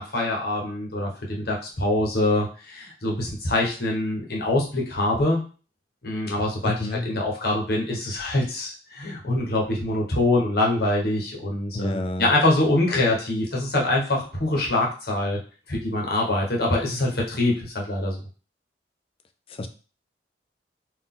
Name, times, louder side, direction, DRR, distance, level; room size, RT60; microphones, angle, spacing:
voice 1, 0.0-5.4 6.0-6.7 7.0-15.4 15.7-18.2, left 2 dB, 60° left, -1 dB, 1.1 m, -24 dB
voice 2, 6.6-7.1 11.7-12.3 19.5-19.7, left 2 dB, 30° left, 7 dB, 0.4 m, -29 dB
4.0 x 2.6 x 3.7 m, 0.37 s
head